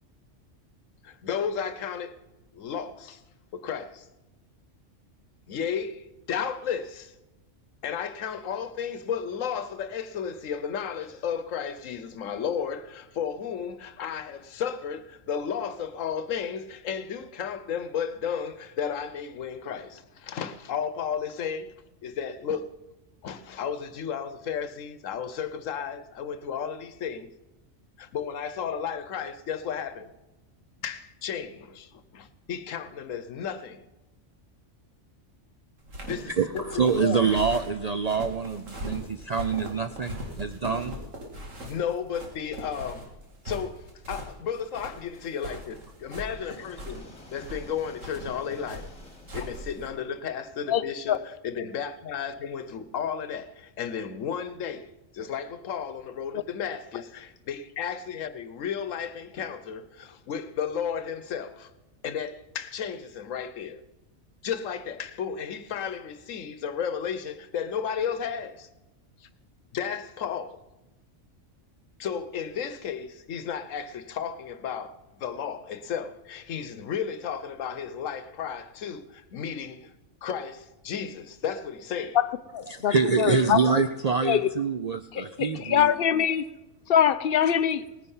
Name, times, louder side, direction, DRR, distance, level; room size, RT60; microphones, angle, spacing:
voice 1, 1.0-2.1 2.5-3.2 3.5-4.1 5.5-7.1 7.8-21.7 22.0-22.7 23.2-27.3 28.0-30.1 30.8-33.8 36.0-36.6 37.0-37.2 41.6-43.1 43.4-47.0 47.3-48.9 49.3-51.2 51.4-54.9 55.1-61.7 62.0-63.8 64.4-68.7 69.2-69.3 69.7-70.6 72.0-74.9 75.2-79.9 80.2-82.2, left 7 dB, 85° left, 1.2 m, -33 dB
sound 1, 35.8-49.9, equal, 80° right, 2.7 m, -40 dB
voice 2, 36.3-41.0 82.7-85.9 87.4-87.5, right 5 dB, 55° right, 0.4 m, -26 dB
sound 2, 45.1-50.9, left 3 dB, 25° left, 2.0 m, -52 dB
voice 3, 82.5-83.6 84.2-84.5 85.1-86.5 86.9-87.9, left 9 dB, 60° left, 0.7 m, -23 dB
18.0 x 9.9 x 5.5 m
omnidirectional pair, 1.3 m